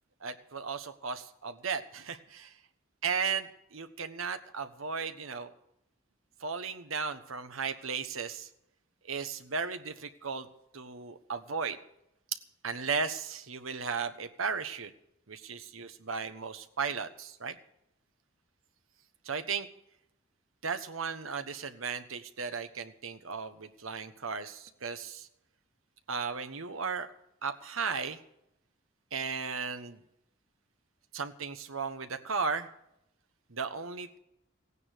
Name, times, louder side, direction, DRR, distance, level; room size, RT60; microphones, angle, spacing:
voice 1, 0.2-2.6 3.0-5.5 6.4-8.5 9.1-10.5 10.7-11.8 12.6-14.9 15.3-17.6 19.2-19.7 20.6-25.3 26.1-27.1 27.4-28.2 29.1-30.0 31.1-32.7 33.5-34.2, right 5 dB, 85° right, 9 dB, 1.3 m, -35 dB
16.5 x 9.7 x 6.7 m, 0.79 s
head